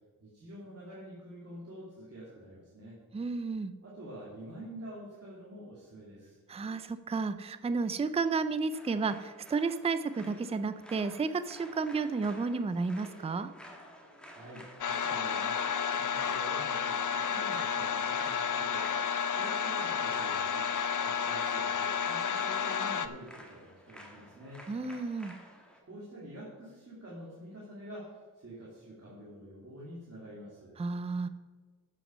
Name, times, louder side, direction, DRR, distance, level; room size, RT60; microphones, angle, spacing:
voice 1, 0.2-3.0 3.8-6.4 14.3-19.0 19.3-20.7 21.0-24.6 25.8-30.8, right 1 dB, 40° right, -7 dB, 2.4 m, -47 dB
voice 2, 3.1-3.7 6.5-13.5 24.7-25.3 30.8-31.3, right 4 dB, 20° right, 12 dB, 0.4 m, -32 dB
sound 1, 8.7-25.8, equal, 5° left, 1.4 m, -52 dB
sound 2, 14.8-23.1, left 7 dB, 55° left, 0.6 m, -31 dB
13.5 x 6.1 x 5.4 m, 1.4 s
wide cardioid pair, 160°, 36 cm